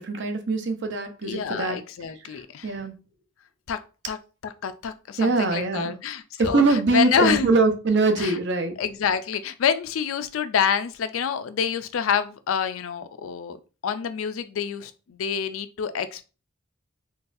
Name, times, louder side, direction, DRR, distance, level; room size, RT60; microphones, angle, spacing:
voice 1, 0.0-1.8 2.1-2.9 5.2-5.9 6.4-8.7, right 3 dB, 60° right, 0.6 m, -23 dB
voice 2, 1.2-2.7 3.7-3.8 4.1-4.2 4.4-7.5 8.2-8.3 8.8-13.6 13.8-16.3, left 7 dB, 85° left, 0.4 m, -27 dB
3.9 x 2.3 x 2.6 m
head